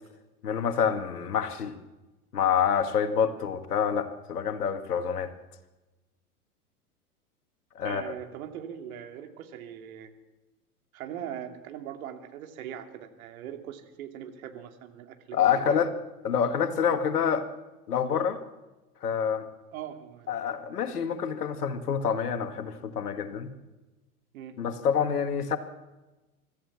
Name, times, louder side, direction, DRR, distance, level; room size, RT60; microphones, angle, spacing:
voice 1, 0.4-1.7 2.3-5.3 7.8-8.1 15.3-15.9 16.2-17.4 17.9-18.4 19.0-19.5 20.3-23.5 24.6-25.6, left 7 dB, 80° left, 8 dB, 2.2 m, -27 dB
voice 2, 7.8-10.1 10.9-15.8 19.7-20.6 24.3-24.6, right 10 dB, 65° right, 6 dB, 2.7 m, -41 dB
25.0 x 14.0 x 7.3 m, 1.1 s
hypercardioid pair, 100°, 45 cm